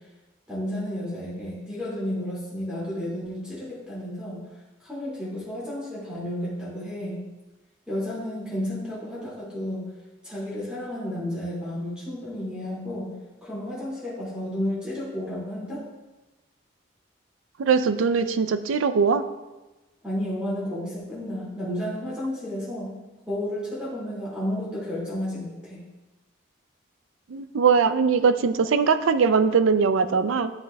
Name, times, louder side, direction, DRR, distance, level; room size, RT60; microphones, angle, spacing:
voice 1, 0.5-4.4 4.8-7.2 7.9-9.8 10.2-13.1 13.4-15.9 20.0-22.9 23.3-25.8, left 1 dB, 5° right, -8 dB, 2.1 m, -32 dB
voice 2, 17.6-19.2 27.3-30.5, right 5 dB, 85° right, 11 dB, 0.4 m, -21 dB
9.6 x 6.6 x 2.3 m, 1.1 s
head